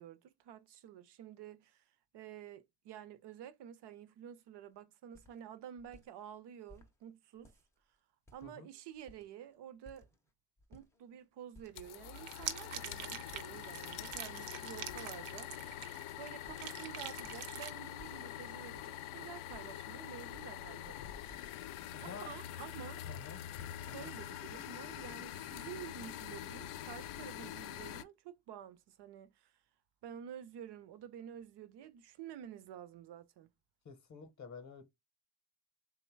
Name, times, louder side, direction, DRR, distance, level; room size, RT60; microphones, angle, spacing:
voice 1, 0.0-1.8 2.1-7.5 8.3-10.1 10.7-15.5 16.2-21.1 21.4-21.7 22.0-23.0 23.8-29.6 30.0-33.5, right 10 dB, 60° right, 0.5 m, -50 dB
sound 1, 4.7-4.8 5.1-5.4 5.8-6.1 6.7-6.9 7.4-7.8 8.3-8.7 8.9-9.5 9.9-10.3 10.6-11.2 11.5-12.1 12.4-12.6 13.3-13.7 14.0-14.3 14.9-15.4 15.7-15.8 16.5-16.8 17.2-17.4 18.0-18.3 18.7-19.9 20.2-20.5 21.1-21.7, left 1 dB, 5° left, 0.4 m, -59 dB
sound 2, 11.7-28.0, left 12 dB, 90° left, 0.5 m, -45 dB
sound 3, 12.2-16.3 16.6-17.7, right 9 dB, 85° right, 0.8 m, -44 dB
voice 2, 21.9-22.3 23.0-23.4 24.0-24.1 33.8-34.8, left 5 dB, 35° left, 0.7 m, -50 dB
3.8 x 2.1 x 4.4 m
cardioid pair, 180°, 48 cm